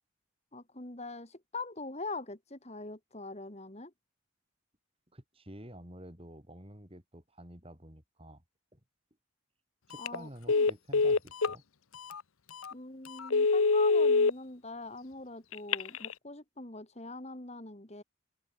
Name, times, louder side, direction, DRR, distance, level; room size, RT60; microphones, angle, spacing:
voice 1, 0.5-3.9 10.0-10.7 12.7-18.0, left 3 dB, 30° left, 2.1 m, -43 dB
voice 2, 5.1-8.4 8.7-8.8 9.9-11.6, right 1 dB, 25° right, 4.2 m, -49 dB
Telephone, 9.9-10.2 10.5-11.6 12.1-12.2 12.6-12.7 13.2-14.3 15.5-16.1, left 4 dB, 80° left, 0.9 m, -25 dB
open air
head